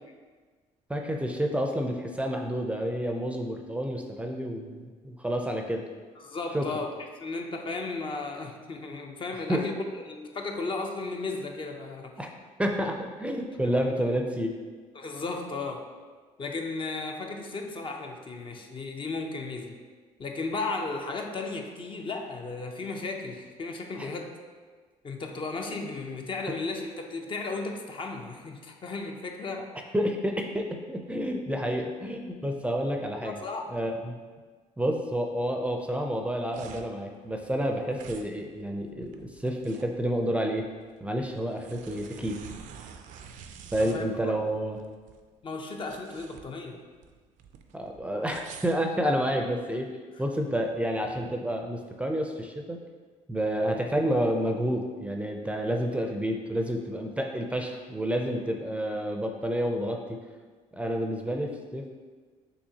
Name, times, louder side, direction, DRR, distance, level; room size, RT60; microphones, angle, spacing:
voice 1, 0.9-5.9 6.5-6.7 9.5-9.7 12.2-12.3 12.6-14.6 24.0-24.1 29.9-33.4 33.7-34.1 34.8-40.6 41.0-42.4 43.7-44.8 47.7-49.9 50.2-52.8 53.3-60.0 60.7-61.9, equal, 10° right, 2 dB, 0.5 m, -29 dB
voice 2, 6.2-6.9 7.2-12.1 14.9-15.9 16.4-19.8 20.2-24.3 25.0-29.7 33.2-33.6 43.8-44.3 45.4-46.8, left 3 dB, 40° left, 3 dB, 0.6 m, -35 dB
sound 1, 36.1-49.6, right 7 dB, 70° right, 0.4 m, -48 dB
6.2 x 3.1 x 2.8 m, 1.5 s
cardioid pair, 85°, 13 cm